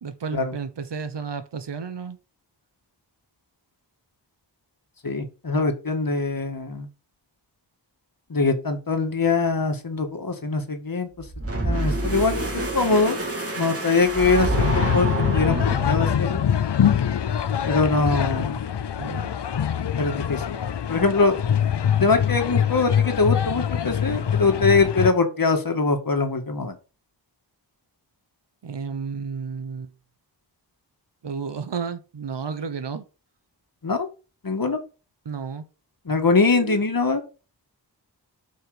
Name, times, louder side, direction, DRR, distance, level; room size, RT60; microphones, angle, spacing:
voice 1, 0.0-2.2 19.0-19.3 28.6-29.9 31.2-33.0 35.2-35.7 36.4-36.8, right 5 dB, 70° right, 1.2 m, -32 dB
voice 2, 5.0-6.9 8.3-11.1 11.6-13.2 13.6-15.1 15.3-16.4 17.7-18.6 20.0-20.6 20.9-21.4 22.0-26.8 33.8-34.1 34.4-34.8 36.1-37.2, left 4 dB, 50° left, 2.0 m, -22 dB
sound 1, 11.2-16.4, right 2 dB, 30° right, 3.2 m, -27 dB
sound 2, 14.5-25.1, left 8 dB, 70° left, 0.8 m, -24 dB
7.6 x 5.5 x 5.0 m
wide cardioid pair, 60°, 43 cm